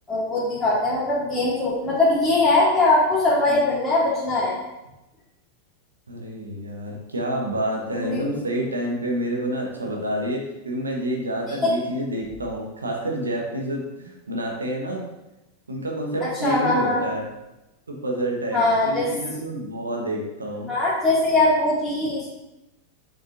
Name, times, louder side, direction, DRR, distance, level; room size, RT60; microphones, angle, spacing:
voice 1, 0.1-4.6 8.0-8.2 11.6-11.7 16.2-17.0 18.5-19.1 20.7-22.3, left 2 dB, 5° left, -11 dB, 2.0 m, -21 dB
voice 2, 6.1-15.0 15.7-17.2 17.9-20.7, right 1 dB, 75° right, 0 dB, 1.0 m, -28 dB
7.3 x 5.1 x 2.5 m, 0.97 s
figure-of-eight pair, 90°, 0 cm